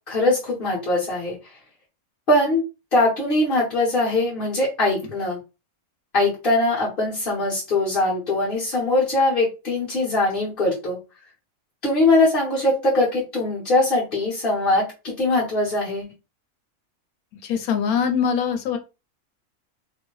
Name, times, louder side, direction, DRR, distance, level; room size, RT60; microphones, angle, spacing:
voice 1, 0.1-1.4 2.3-2.6 2.9-5.4 6.1-11.0 11.8-16.1, left 2 dB, 40° left, -7 dB, 1.3 m, -21 dB
voice 2, 17.4-18.8, left 7 dB, 85° left, 7 dB, 1.1 m, -22 dB
2.9 x 2.2 x 3.0 m, 0.28 s
omnidirectional pair, 1.5 m